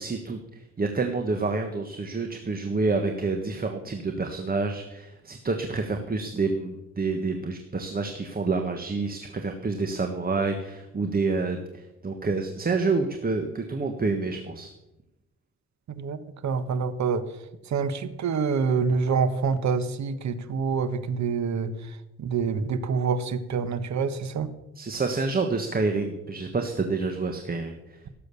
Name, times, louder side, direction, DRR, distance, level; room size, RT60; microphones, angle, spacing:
voice 1, 0.0-14.7 24.7-28.0, right 3 dB, 30° right, 5 dB, 1.5 m, -28 dB
voice 2, 16.4-17.2 17.7-21.7 22.2-24.5, right 5 dB, 60° right, 12 dB, 1.4 m, -26 dB
17.0 x 7.6 x 7.0 m, 0.93 s
cardioid pair, 100°, 32 cm